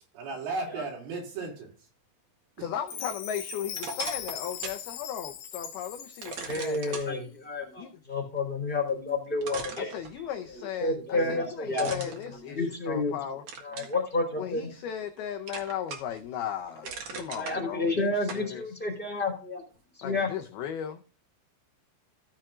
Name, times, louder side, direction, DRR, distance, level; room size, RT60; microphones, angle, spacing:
voice 1, 0.2-1.7 2.6-2.7, right 3 dB, 90° right, 5.4 m, -35 dB
voice 2, 2.6-7.0 7.8-7.9 9.8-13.4 14.3-18.8 20.0-21.0, left 9 dB, 90° left, 2.1 m, -37 dB
Chime, 2.9-7.0, left 9 dB, 70° left, 3.1 m, -39 dB
sound 1, 3.7-4.9 5.3-5.4 6.2-7.1 8.9-9.0 9.4-10.5 11.7-13.0 13.5-14.0 14.5-15.2 15.5-16.2 16.6-17.6 18.3-18.5, right 5 dB, 55° right, 2.3 m, -39 dB
voice 3, 6.5-9.9 10.6-13.1 13.6-14.7 17.1-19.6 20.0-20.3, left 2 dB, 10° left, 3.0 m, -30 dB
15.5 x 7.4 x 2.5 m
omnidirectional pair, 5.5 m